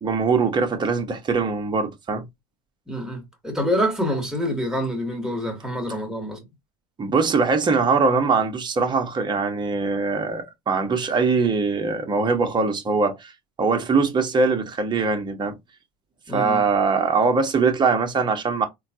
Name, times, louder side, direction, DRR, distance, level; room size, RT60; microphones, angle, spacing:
voice 1, 0.0-2.2 7.0-13.3 13.6-15.5 16.3-18.7, right 4 dB, 25° right, 1.0 m, -22 dB
voice 2, 2.9-6.4 16.3-16.6, equal, 5° right, 1.3 m, -26 dB
3.7 x 2.3 x 2.7 m
supercardioid pair, 100°, 20 cm